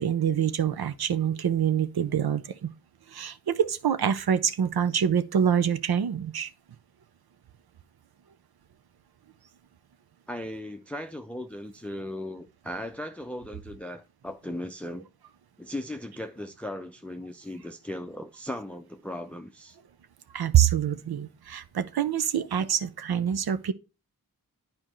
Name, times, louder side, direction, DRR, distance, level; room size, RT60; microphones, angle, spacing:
voice 1, 0.0-2.7 3.1-6.5 20.3-23.7, right 9 dB, 85° right, 0.6 m, -25 dB
voice 2, 10.3-15.1 15.6-19.8, left 1 dB, 5° left, 0.5 m, -37 dB
9.9 x 4.4 x 3.0 m
cardioid pair, 40°, 37 cm